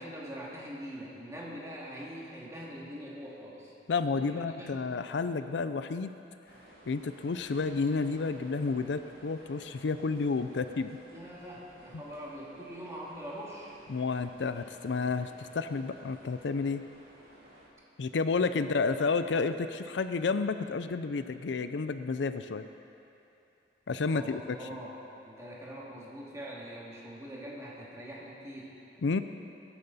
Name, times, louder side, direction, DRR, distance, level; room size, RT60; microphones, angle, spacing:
voice 1, 0.0-3.7 4.2-4.9 11.1-13.7 24.1-24.9 25.2-28.7, equal, 15° right, -5 dB, 2.4 m, -43 dB
voice 2, 3.9-6.1 6.9-11.0 11.9-12.0 13.9-16.8 18.0-22.6 23.9-24.7 29.0-29.2, left 4 dB, 70° left, 10 dB, 0.5 m, -31 dB
sound 1, 6.4-17.7, right 1 dB, 55° right, 2.7 m, -55 dB
21.0 x 10.5 x 4.2 m, 2.8 s
head